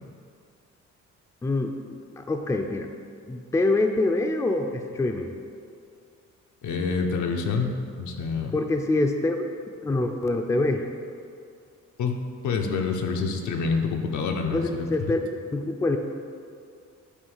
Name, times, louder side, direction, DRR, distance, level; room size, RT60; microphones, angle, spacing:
voice 1, 1.4-2.9 3.3-5.4 8.5-9.4 9.8-10.9 14.5-16.0, left 2 dB, 10° left, 4 dB, 0.4 m, -25 dB
voice 2, 6.6-7.7 8.0-8.5 12.0-14.9, left 5 dB, 75° left, 3 dB, 0.8 m, -27 dB
8.2 x 2.8 x 5.5 m, 2.4 s
cardioid pair, 90°, 30 cm